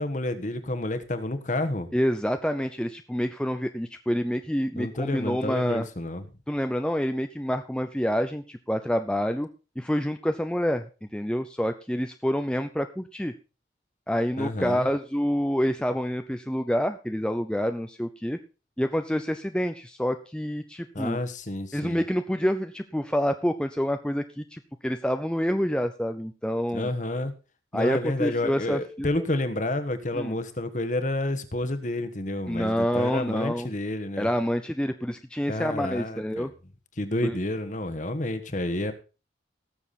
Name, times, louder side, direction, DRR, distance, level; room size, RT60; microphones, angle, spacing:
voice 1, 0.0-1.9 4.8-6.2 14.4-14.9 20.9-22.0 26.7-27.3 27.7-34.3 35.5-36.5 37.0-38.9, left 1 dB, 40° left, 8 dB, 1.3 m, -29 dB
voice 2, 1.9-5.9 6.5-9.5 9.8-10.9 11.1-13.3 14.1-18.4 18.8-21.2 21.7-26.9 27.7-29.1 30.1-30.3 32.5-33.7 34.2-36.5 37.2-37.3, equal, 5° left, 7 dB, 0.5 m, -27 dB
18.0 x 7.1 x 4.2 m, 0.32 s
head